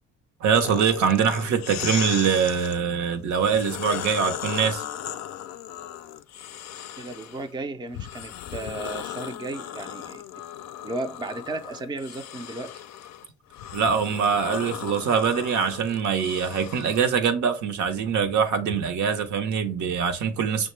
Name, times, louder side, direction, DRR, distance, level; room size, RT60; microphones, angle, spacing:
voice 1, 0.4-4.8 13.7-20.7, right 7 dB, 75° right, 0.8 m, -23 dB
sound 1, 0.5-2.8 3.4-7.5 7.9-17.1, left 11 dB, 65° left, 0.4 m, -37 dB
voice 2, 7.0-10.2 10.8-12.8, right 2 dB, 15° right, 0.4 m, -34 dB
6.4 x 2.2 x 3.1 m
cardioid pair, 90°, 30 cm